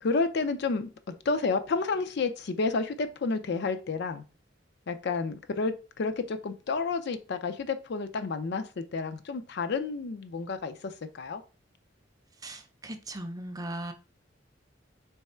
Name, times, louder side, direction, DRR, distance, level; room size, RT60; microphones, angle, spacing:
voice 1, 0.0-4.2 4.9-11.4, left 4 dB, 60° left, 0.5 m, -30 dB
voice 2, 12.4-13.9, right 1 dB, 20° right, 0.5 m, -38 dB
3.4 x 3.2 x 4.3 m
head